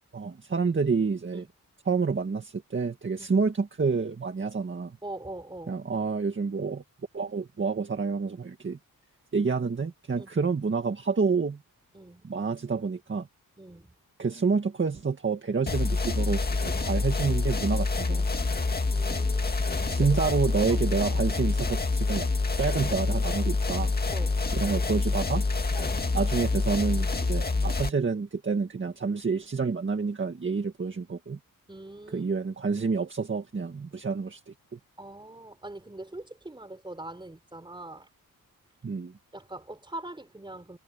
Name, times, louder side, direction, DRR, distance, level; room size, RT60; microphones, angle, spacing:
voice 1, 0.1-1.5 1.9-5.0 5.7-6.8 7.1-8.8 9.3-11.6 12.2-13.3 14.2-18.3 19.9-22.3 22.6-23.9 24.5-25.4 26.1-31.4 32.1-34.8 38.8-39.1, right 4 dB, 35° right, 1.9 m, -28 dB
voice 2, 5.0-5.8 10.2-10.3 11.9-12.3 13.6-13.9 18.9-19.7 20.0-20.3 20.7-20.8 24.1-24.5 25.7-26.1 31.7-32.3 35.0-38.1 39.3-40.8, right 2 dB, 15° right, 4.6 m, -42 dB
sound 1, 15.7-27.9, left 3 dB, 25° left, 2.0 m, -27 dB
wide cardioid pair, 125°, 35 cm